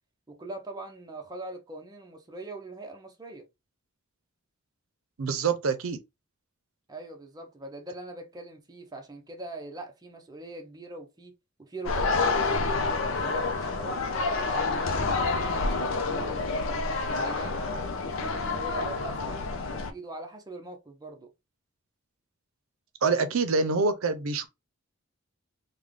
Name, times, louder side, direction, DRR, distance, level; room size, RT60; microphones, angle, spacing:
voice 1, 0.3-3.5 6.9-17.6 18.0-19.4 19.7-21.3, right 2 dB, 20° right, 0.7 m, -42 dB
voice 2, 5.2-6.0 23.0-24.5, right 4 dB, 90° right, 0.6 m, -26 dB
sound 1, 11.9-19.9, left 3 dB, 70° left, 0.5 m, -28 dB
3.3 x 2.2 x 3.7 m
head